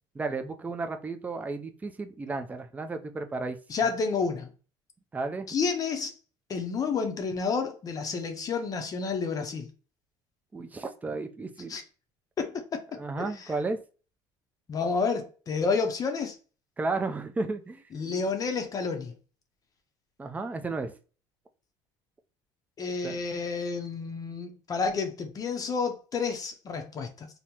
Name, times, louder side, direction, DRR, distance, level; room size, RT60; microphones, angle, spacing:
voice 1, 0.1-3.6 5.1-5.5 10.5-11.8 12.9-13.8 16.8-17.8 20.2-20.9 23.0-23.2, right 3 dB, 15° right, 0.4 m, -33 dB
voice 2, 3.7-4.5 5.5-6.1 6.5-9.7 11.7-11.8 12.4-12.8 13.2-13.5 14.7-16.4 17.9-19.2 22.8-27.3, left 5 dB, 35° left, 0.6 m, -30 dB
3.5 x 2.1 x 2.8 m
cardioid pair, 110°, 11 cm